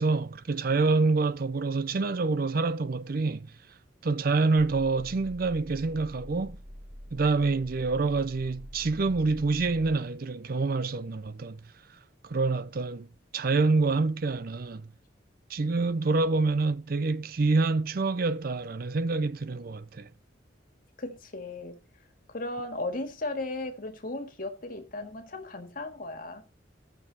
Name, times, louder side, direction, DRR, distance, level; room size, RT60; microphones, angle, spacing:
voice 1, 0.0-3.5 4.0-6.6 7.1-11.6 12.2-13.1 13.3-14.9 15.5-20.1, right 3 dB, 50° right, 0.5 m, -27 dB
sound 1, 4.6-10.0, equal, 5° right, 0.9 m, -45 dB
voice 2, 21.0-21.8 22.3-26.4, left 2 dB, 45° left, 1.8 m, -36 dB
15.5 x 6.8 x 4.1 m
head